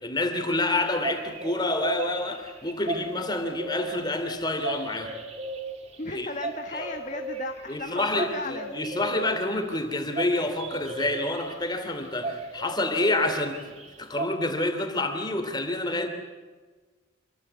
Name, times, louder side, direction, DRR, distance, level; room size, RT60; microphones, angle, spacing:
voice 1, 0.0-5.1 6.1-6.3 6.7-6.9 7.7-16.1, left 2 dB, 20° left, 7 dB, 2.9 m, -28 dB
sound 1, 0.7-14.3, right 3 dB, 30° right, 2.1 m, -37 dB
voice 2, 6.0-8.7, left 2 dB, 40° left, 4 dB, 1.4 m, -35 dB
27.0 x 23.0 x 8.1 m, 1.4 s
head